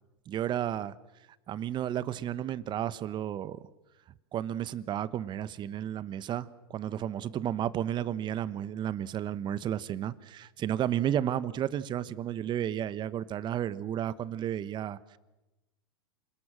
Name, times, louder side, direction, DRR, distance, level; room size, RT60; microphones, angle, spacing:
voice 1, 0.3-0.9 1.5-3.6 4.3-15.2, right 10 dB, 35° right, 17 dB, 1.1 m, -32 dB
27.0 x 20.0 x 7.5 m, 1.0 s
hypercardioid pair, 110°, 14 cm